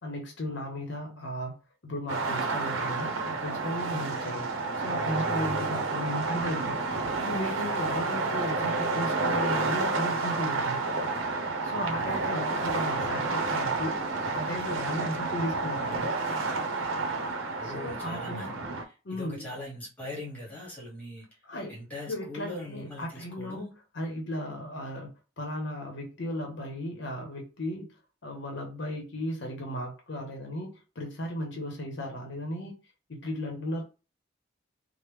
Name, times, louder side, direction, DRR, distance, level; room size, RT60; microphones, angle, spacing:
voice 1, 0.0-6.8 7.2-10.8 11.6-16.0 17.6-18.6 19.0-19.5 21.5-21.8 22.1-23.7 24.0-25.1 25.4-27.9 28.2-32.8 33.1-33.8, left 1 dB, 65° left, 0.7 m, -36 dB
sound 1, 2.1-18.8, right 3 dB, 85° right, 0.6 m, -30 dB
voice 2, 8.0-8.4 11.7-12.3 17.6-18.6 18.8-21.3 21.7-23.7, left 1 dB, 10° left, 1.3 m, -41 dB
3.1 x 2.0 x 3.3 m
head